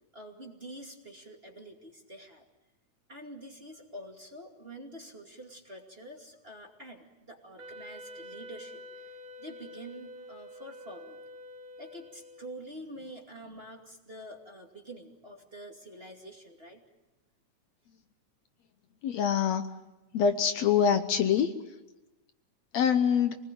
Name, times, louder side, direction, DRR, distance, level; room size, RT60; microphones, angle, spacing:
voice 1, 0.1-2.4 3.1-11.2 11.8-16.8, right 1 dB, 20° right, 1 dB, 2.4 m, -47 dB
Wind instrument woodwind instrument, 7.6-12.8, left 1 dB, 65° right, 2.5 m, -47 dB
voice 2, 19.0-19.6 20.1-21.5 22.7-23.4, left 7 dB, 70° left, 8 dB, 2.0 m, -25 dB
27.0 x 20.0 x 9.1 m, 1.1 s
omnidirectional pair, 3.5 m